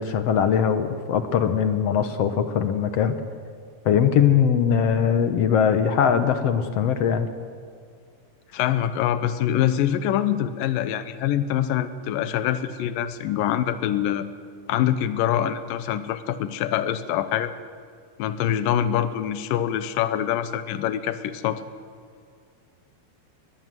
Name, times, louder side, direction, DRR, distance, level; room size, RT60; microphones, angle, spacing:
voice 1, 0.0-3.1 3.9-7.3, left 8 dB, 65° left, 9 dB, 1.6 m, -21 dB
voice 2, 8.5-14.3 14.7-17.5 18.2-21.7, left 10 dB, 85° left, 12 dB, 2.6 m, -24 dB
22.0 x 20.5 x 7.7 m, 2.2 s
omnidirectional pair, 4.0 m